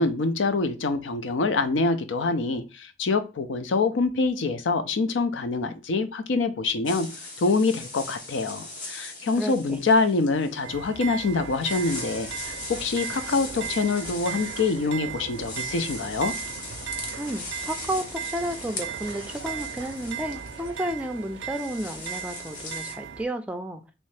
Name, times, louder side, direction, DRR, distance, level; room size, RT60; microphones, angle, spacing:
voice 1, 0.0-7.1 7.4-16.3, left 3 dB, 85° left, 0.5 m, -25 dB
sound 1, 6.9-22.9, left 3 dB, 45° left, 0.8 m, -40 dB
voice 2, 9.4-9.8 17.2-23.8, right 1 dB, 5° right, 0.3 m, -32 dB
sound 2, 10.6-23.2, right 9 dB, 75° right, 0.4 m, -37 dB
3.1 x 2.7 x 3.2 m
head